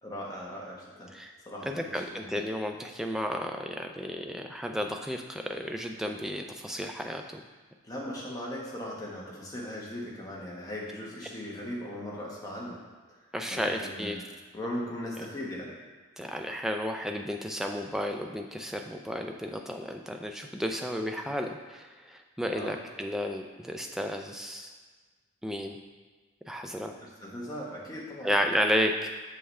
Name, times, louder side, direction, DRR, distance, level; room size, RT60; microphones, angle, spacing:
voice 1, 0.0-1.1 1.5-2.4 7.8-12.8 13.5-14.2 14.5-15.8 22.5-22.7 27.0-28.3, left 1 dB, 15° left, -5 dB, 1.1 m, -38 dB
voice 2, 1.6-7.4 13.3-14.2 16.2-24.7 25.4-25.8 26.5-26.9 28.2-29.1, equal, ahead, 3 dB, 0.3 m, -32 dB
6.8 x 5.6 x 3.2 m, 1.4 s
head